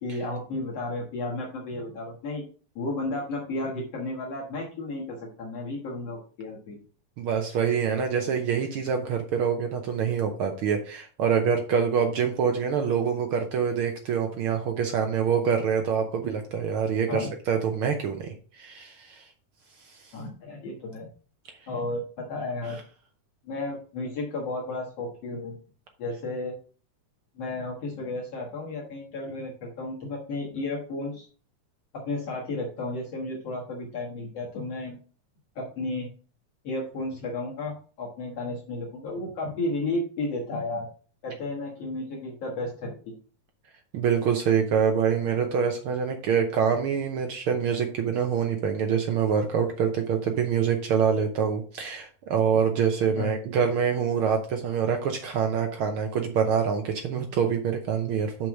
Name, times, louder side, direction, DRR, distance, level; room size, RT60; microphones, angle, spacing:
voice 1, 0.0-2.4 2.8-6.8 17.1-17.3 20.1-21.1 21.7-22.8 23.4-25.6 26.0-26.5 27.4-31.3 31.9-35.0 35.6-36.1 36.6-40.9 41.2-43.1 53.2-53.3, left 2 dB, 60° left, -3 dB, 2.4 m, -33 dB
voice 2, 7.2-18.3 18.5-19.2 43.9-58.5, right 7 dB, 75° right, 5 dB, 1.2 m, -25 dB
6.3 x 5.8 x 4.7 m, 0.40 s
omnidirectional pair, 3.4 m